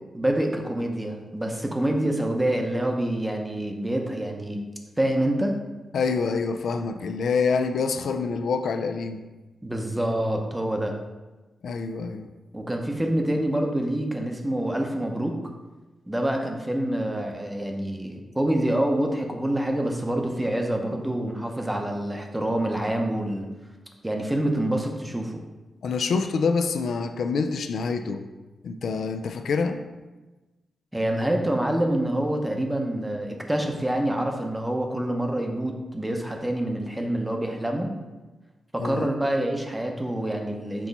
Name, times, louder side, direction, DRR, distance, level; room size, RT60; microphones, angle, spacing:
voice 1, 0.1-4.6 5.0-5.6 9.6-11.0 12.5-15.4 16.1-23.5 24.0-25.4 30.9-37.9 38.7-40.9, right 1 dB, 10° right, 3 dB, 0.7 m, -26 dB
voice 2, 5.9-9.2 11.6-12.3 25.8-28.2 28.6-29.8 38.8-39.1, left 5 dB, 75° left, 7 dB, 0.4 m, -26 dB
6.1 x 2.9 x 5.2 m, 1.2 s
wide cardioid pair, 120°, 0 cm